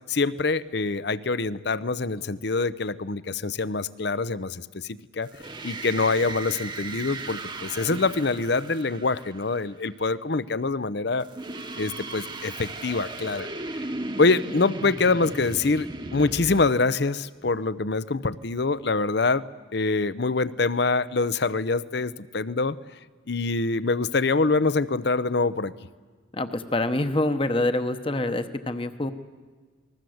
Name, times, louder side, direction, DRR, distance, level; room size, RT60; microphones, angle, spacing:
voice 1, 0.1-5.3 5.6-11.3 11.8-13.5 14.2-19.4 19.7-22.8 23.3-25.7, left 3 dB, 55° left, 17 dB, 0.7 m, -25 dB
sound 1, 5.3-9.7 11.2-16.7, right 2 dB, 20° right, 1.1 m, -36 dB
voice 2, 26.3-29.1, left 2 dB, 25° left, 9 dB, 1.0 m, -26 dB
28.5 x 20.5 x 7.9 m, 1.4 s
head